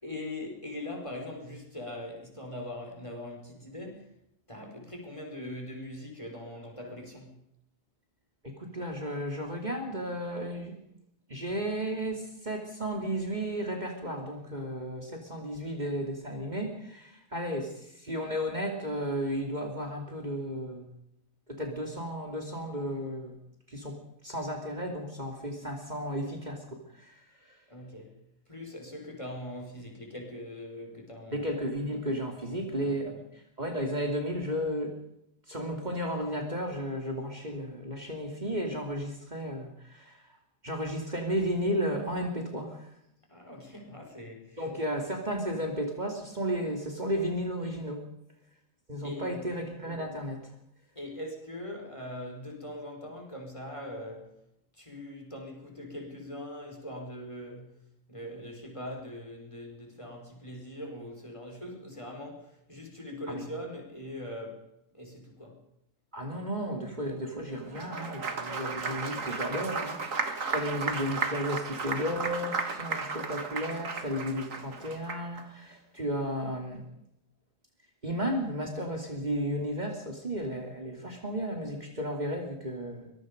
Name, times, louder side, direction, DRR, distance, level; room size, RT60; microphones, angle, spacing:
voice 1, 0.0-4.2 4.5-7.4 27.7-28.1 28.5-31.5 32.3-33.2 43.3-44.7 49.0-49.4 51.0-54.3 54.7-57.7 58.1-64.7 64.9-65.6, left 1 dB, 20° left, 1 dB, 5.2 m, -41 dB
voice 2, 8.4-10.8 11.3-20.9 21.5-23.4 23.7-24.0 24.2-27.2 27.5-27.6 31.3-33.2 33.6-34.9 35.5-40.2 40.6-42.9 44.6-48.0 48.9-50.5 63.3-63.4 66.1-76.8 78.0-83.1, equal, 30° right, 2 dB, 3.0 m, -33 dB
Applause, 67.6-75.4, right 4 dB, 75° right, 2.3 m, -34 dB
24.5 x 21.0 x 5.3 m, 0.78 s
omnidirectional pair, 1.4 m